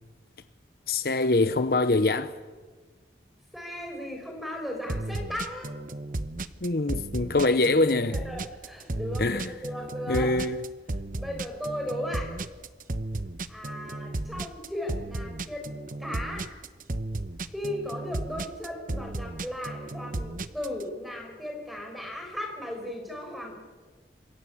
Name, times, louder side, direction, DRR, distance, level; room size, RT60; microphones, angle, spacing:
voice 1, 0.9-2.4 6.6-8.2 9.2-9.5 10.1-10.6, left 2 dB, 55° left, 0.9 m, -24 dB
voice 2, 3.5-5.7 7.4-7.5 8.1-10.3 11.1-12.3 13.5-15.7 16.0-16.5 17.5-23.5, left 1 dB, ahead, 5.9 m, -36 dB
sound 1, 4.9-20.8, right 2 dB, 50° right, 1.0 m, -34 dB
27.0 x 22.0 x 8.6 m
head